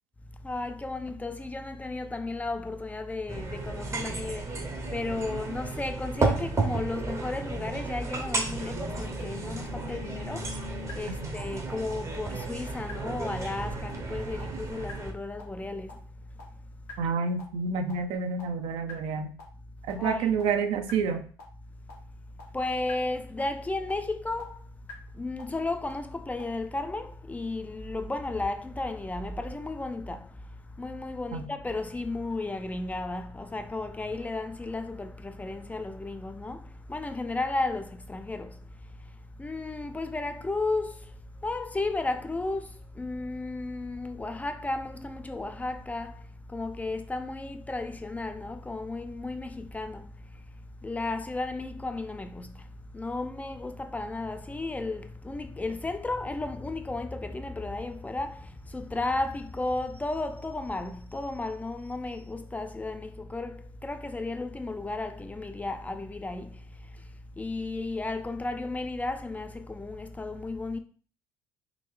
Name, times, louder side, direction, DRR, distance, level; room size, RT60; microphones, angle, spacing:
voice 1, 0.4-16.7 20.0-20.3 22.5-24.8 25.1-70.8, left 2 dB, 15° left, 0.3 m, -34 dB
sound 1, 3.3-15.1, right 3 dB, 30° right, 0.7 m, -33 dB
sound 2, 8.5-10.9 11.4-11.5 11.9-12.0 12.4-12.5 12.9-13.0 13.4-13.5 13.9-14.0 14.4-14.5 14.9-15.0 15.4-15.5 15.9-16.0 16.4-16.5 16.9-17.0 17.4-17.5 17.9-18.0 18.4-18.5 18.9-19.0 19.4-19.5 19.9-20.0 20.4-20.5 20.9-21.0 21.4-21.5 21.9-22.0 22.4-22.5 22.9-23.0 23.4-23.5 23.9-24.0 24.4-24.5 24.9-25.0 25.4-25.5 25.9-26.0 26.4-26.5, left 9 dB, 75° left, 1.1 m, -45 dB
voice 2, 17.0-19.3 19.9-21.2 31.3-31.5, right 5 dB, 65° right, 0.5 m, -29 dB
3.7 x 2.1 x 3.1 m
hypercardioid pair, 70°, 10 cm